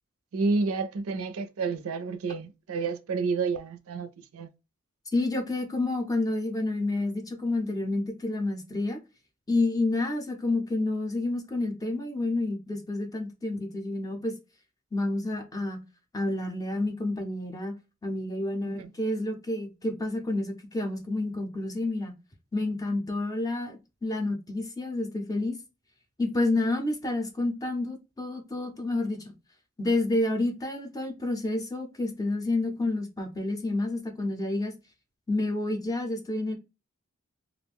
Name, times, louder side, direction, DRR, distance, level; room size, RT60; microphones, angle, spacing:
voice 1, 0.3-4.5 18.6-18.9, right 4 dB, 85° right, 0.4 m, -30 dB
voice 2, 5.1-9.0 9.5-14.3 14.9-15.8 16.1-17.7 18.0-22.1 22.5-25.6 26.2-29.3 29.8-34.7 35.3-36.5, left 2 dB, 15° left, 0.5 m, -29 dB
2.4 x 2.1 x 3.3 m
head